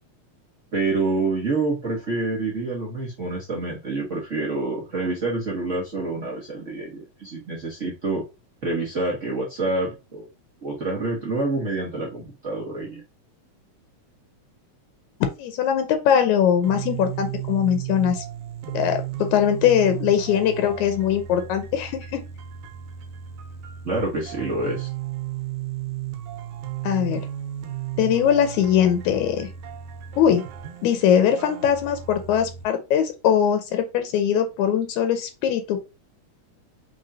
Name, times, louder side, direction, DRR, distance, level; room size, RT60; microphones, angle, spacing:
voice 1, 0.7-8.2 8.6-10.3 10.6-13.0 23.8-24.9, right 2 dB, 50° right, -4 dB, 0.9 m, -27 dB
voice 2, 15.4-18.2 18.7-22.2 26.8-27.3 28.0-29.5 30.2-30.4 30.8-35.8, left 9 dB, 85° left, 7 dB, 2.1 m, -21 dB
sound 1, 16.6-32.6, right 12 dB, 85° right, 2.2 m, -34 dB
5.0 x 3.6 x 2.7 m, 0.27 s
omnidirectional pair, 3.3 m